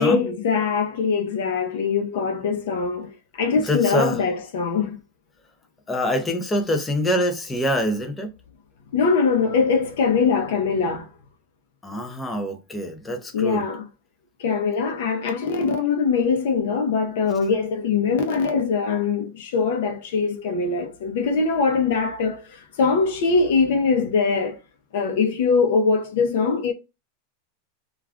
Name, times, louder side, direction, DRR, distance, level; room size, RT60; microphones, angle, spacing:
voice 1, 0.0-3.1 3.4-5.0 8.9-11.1 13.3-13.9 14.4-22.4 22.8-24.6 24.9-26.7, left 5 dB, 70° left, 0.7 m, -22 dB
voice 2, 3.6-4.2 5.9-8.3 11.8-13.6, equal, 10° left, 0.5 m, -25 dB
2.4 x 2.3 x 3.4 m
supercardioid pair, 145°, 0 cm